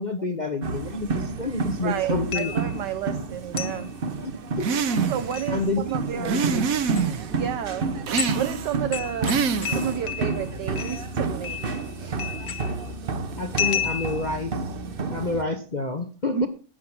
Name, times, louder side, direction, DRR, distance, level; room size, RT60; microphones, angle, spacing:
voice 1, 0.0-2.6 4.2-4.8 5.5-6.7 13.4-14.6 15.1-16.5, left 3 dB, 30° left, 7 dB, 0.9 m, -29 dB
sound 1, 0.6-15.4, right 4 dB, 35° right, 1.0 m, -30 dB
voice 2, 1.8-3.9 5.1-5.6 5.9-6.4 7.3-7.9 8.3-9.4 9.7-11.6 12.0-12.2 16.3-16.5, right 10 dB, 70° right, 9 dB, 1.4 m, -31 dB
sound 2, 2.3-2.8 3.6-3.8 5.1-5.5 6.8-7.0 7.7-7.8 8.2-8.5 8.9-10.5 10.8-11.1 11.4-11.9 12.2-12.9 13.6-14.3, left 8 dB, 60° left, 1.6 m, -31 dB
sound 3, 4.6-5.4 6.2-7.3 8.1-8.8 9.2-10.0, right 6 dB, 55° right, 1.3 m, -26 dB
12.5 x 9.4 x 6.0 m, 0.39 s
omnidirectional pair, 2.0 m